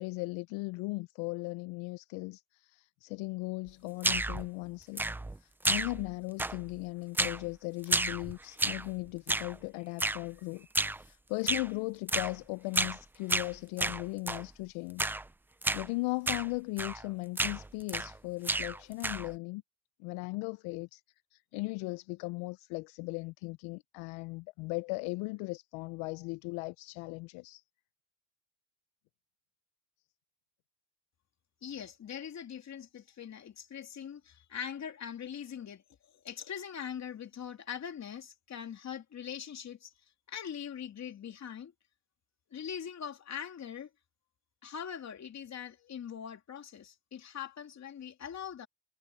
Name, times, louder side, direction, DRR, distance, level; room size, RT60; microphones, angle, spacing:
voice 1, 0.0-5.0 5.4-10.7 11.0-15.1 15.7-19.6 20.0-21.0 21.3-27.6, left 25 dB, 75° left, 0.6 m, -38 dB
sound 1, 4.0-4.5 5.0-5.4 5.6-6.1 6.4-6.8 7.2-7.5 7.8-8.9 9.3-9.6 10.0-10.2 10.7-11.0 11.5-11.7 12.1-12.4 12.7-13.0 13.3-14.5 15.0-15.3 15.6-15.9 16.3-16.5 16.8-17.1 17.4-18.2 18.4-19.3, right 2 dB, 5° right, 0.4 m, -31 dB
voice 2, 31.6-39.9 40.3-41.7 42.5-43.9 44.6-48.7, left 8 dB, 35° left, 3.0 m, -42 dB
cardioid pair, 125°, 48 cm